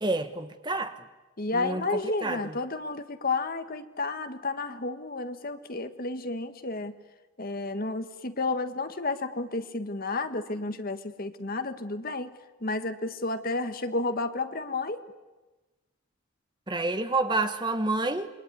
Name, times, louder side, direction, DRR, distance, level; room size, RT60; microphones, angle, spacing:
voice 1, 0.0-1.0 1.5-1.8 2.2-2.5 16.7-18.3, right 2 dB, 20° right, 1.2 m, -28 dB
voice 2, 1.4-6.9 7.4-12.3 12.6-15.0, left 3 dB, 40° left, 1.5 m, -31 dB
28.0 x 22.0 x 9.6 m
head